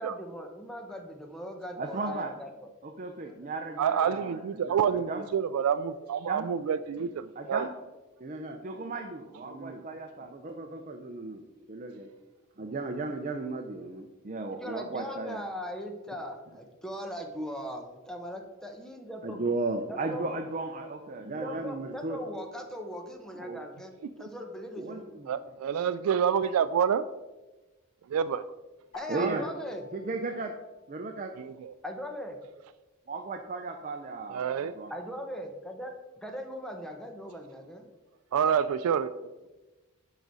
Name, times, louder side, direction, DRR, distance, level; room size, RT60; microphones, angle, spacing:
voice 1, 0.0-2.7 3.3-3.4 14.5-19.4 19.9-20.4 21.4-25.2 28.9-29.8 31.8-32.4 34.9-35.9 36.2-37.9, equal, 5° left, 3 dB, 0.9 m, -39 dB
voice 2, 1.8-2.3 2.8-5.3 6.3-6.5 7.4-7.7 8.2-11.4 11.7-12.1 12.6-15.4 19.2-22.2 23.3-23.6 24.8-25.3 29.1-29.5 29.9-30.5 30.9-31.3 33.1-34.9, right 3 dB, 40° right, 3 dB, 0.6 m, -35 dB
voice 3, 3.8-7.7 24.2-24.3 25.3-27.0 28.1-28.4 31.4-31.7 34.3-34.7 38.3-39.1, right 7 dB, 90° right, 12 dB, 0.3 m, -28 dB
sound 1, 28.9-31.1, left 2 dB, 45° left, 2.8 m, -51 dB
10.5 x 4.9 x 4.1 m, 1.1 s
head